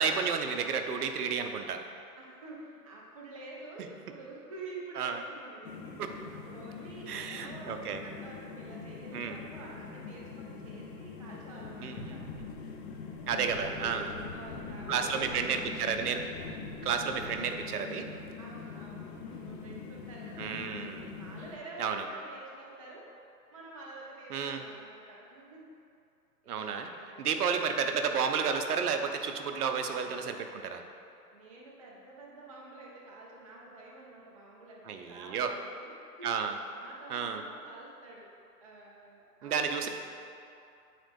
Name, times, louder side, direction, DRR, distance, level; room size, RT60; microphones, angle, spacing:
voice 1, 0.0-1.8 5.0-5.2 6.0-6.1 7.1-8.0 9.1-9.4 11.8-12.0 13.3-14.1 14.9-16.3 16.8-18.1 20.4-21.1 21.8-22.0 24.3-24.6 26.5-26.9 27.2-30.8 34.9-35.5 36.2-36.5 37.1-37.4 39.4-39.9, right 6 dB, 65° right, 6 dB, 0.7 m, -31 dB
voice 2, 2.2-6.0 6.3-12.2 13.3-15.4 17.0-17.3 18.4-20.6 21.1-23.1 23.5-25.7 26.4-27.3 31.3-36.4 36.7-38.3 38.6-39.9, right 2 dB, 25° right, -3 dB, 0.3 m, -49 dB
sound 1, 5.6-21.6, left 5 dB, 40° left, 0.6 m, -44 dB
sound 2, 12.0-17.6, left 1 dB, 65° left, 1.6 m, -46 dB
8.9 x 4.1 x 3.5 m, 2.5 s
hypercardioid pair, 125°, 48 cm